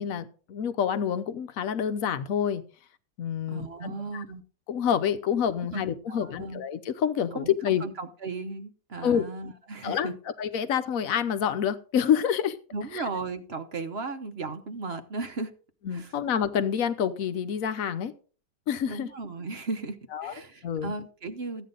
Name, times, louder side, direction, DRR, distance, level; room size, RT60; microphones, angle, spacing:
voice 1, 0.0-2.6 3.2-4.2 4.7-7.8 9.0-9.2 9.8-12.6 12.9-13.0 15.8-18.1 18.7-19.1 20.1-20.3 20.6-20.9, left 8 dB, 60° left, 1.2 m, -27 dB
voice 2, 3.5-4.4 5.6-6.6 7.3-10.1 12.7-15.5 15.9-16.1 18.8-21.7, right 3 dB, 45° right, 1.0 m, -36 dB
14.5 x 9.2 x 3.9 m
omnidirectional pair, 1.8 m